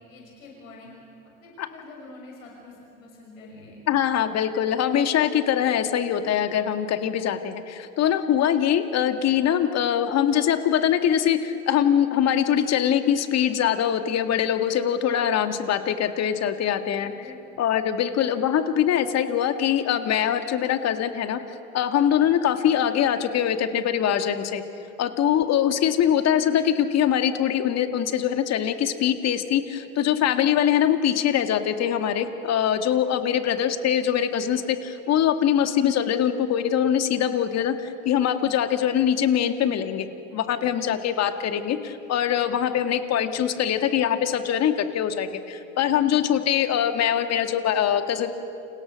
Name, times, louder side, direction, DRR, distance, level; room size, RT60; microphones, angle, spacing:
voice 1, 0.1-0.9 1.4-3.8 17.0-17.7 26.4-26.5 33.7-33.8, left 2 dB, 80° left, -1 dB, 6.3 m, -46 dB
voice 2, 3.9-17.1 17.6-21.4 21.7-24.6 25.0-40.1 40.3-48.3, left 9 dB, 40° left, 8 dB, 2.2 m, -23 dB
30.0 x 28.5 x 6.5 m, 2.6 s
hypercardioid pair, 85°, 40 cm